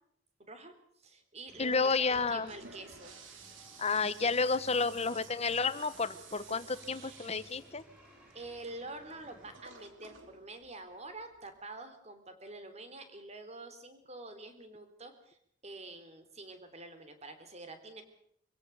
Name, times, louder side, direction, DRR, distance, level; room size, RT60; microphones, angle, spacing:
voice 1, 0.4-3.2 8.3-18.0, right 2 dB, 35° right, 8 dB, 3.5 m, -47 dB
sound 1, 1.5-9.6, equal, 5° right, 7.9 m, -59 dB
voice 2, 1.6-2.5 3.8-7.8, left 4 dB, 35° left, 13 dB, 1.2 m, -31 dB
Toilet flush, 2.2-11.6, right 5 dB, 80° right, 3.4 m, -55 dB
25.5 x 17.0 x 7.0 m, 0.69 s
head